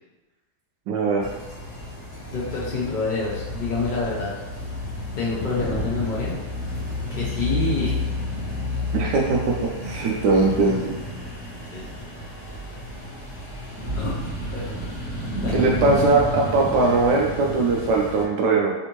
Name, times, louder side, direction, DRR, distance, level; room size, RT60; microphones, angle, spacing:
voice 1, 0.9-1.2 8.9-9.4 9.8-10.9 15.5-18.7, right 3 dB, 85° right, -2 dB, 1.2 m, -20 dB
sound 1, 1.2-18.2, left 1 dB, 35° left, 0.7 m, -31 dB
voice 2, 2.3-4.3 5.2-6.4 7.1-7.9 11.7-11.9 14.0-14.8 15.4-15.6, left 3 dB, 90° left, -6 dB, 0.4 m, -27 dB
3.4 x 2.5 x 3.0 m, 1.1 s
omnidirectional pair, 1.8 m